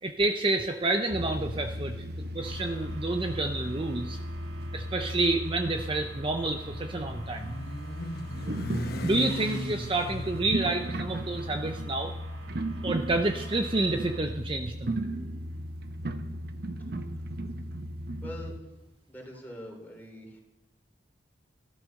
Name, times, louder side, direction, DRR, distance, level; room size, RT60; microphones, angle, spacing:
voice 1, 0.0-2.0 2.3-4.2 4.7-7.6 9.0-12.1 12.8-15.0, right 2 dB, 30° right, 5 dB, 0.7 m, -29 dB
sound 1, 1.1-18.6, right 1 dB, 60° right, 1.0 m, -36 dB
sound 2, 2.4-14.2, right 3 dB, 85° right, 1.8 m, -51 dB
Motorcycle, 5.5-13.7, left 1 dB, 60° left, 1.1 m, -39 dB
voice 2, 18.2-18.6 19.1-20.4, equal, 10° left, 1 dB, 3.4 m, -43 dB
13.0 x 12.5 x 6.5 m, 1.0 s
head